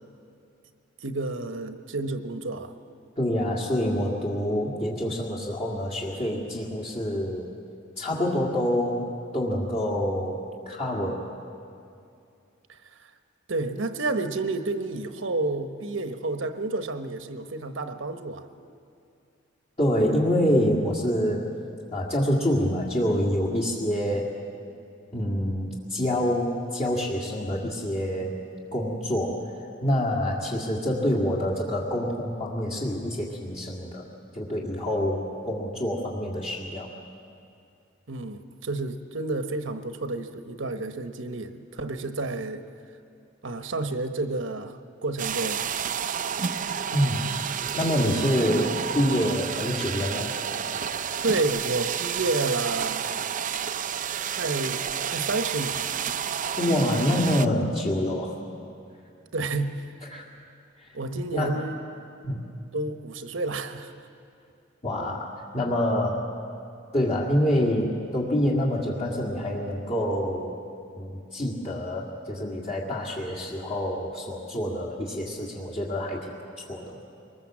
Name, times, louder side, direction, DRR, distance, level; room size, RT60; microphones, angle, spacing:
voice 1, 1.0-2.7 12.7-12.8 13.5-18.5 38.1-42.6 43.4-45.6 51.2-53.1 54.3-56.0 59.3-59.9 60.9-61.8 62.7-63.9, right 2 dB, 75° right, 8 dB, 1.1 m, -30 dB
voice 2, 3.2-7.5 8.0-11.3 19.8-21.5 21.9-24.3 25.1-28.4 28.7-29.4 29.8-34.1 34.3-36.9 46.9-47.3 47.7-50.4 56.6-58.4 60.1-60.3 60.8-60.9 61.3-61.6 62.2-62.4 64.8-66.3 66.9-70.6 71.0-76.3 76.7-77.0, equal, 35° left, -3 dB, 2.1 m, -26 dB
sound 1, 45.2-57.5, right 8 dB, 40° right, 0.6 m, -30 dB
23.5 x 20.5 x 7.4 m, 2.5 s
head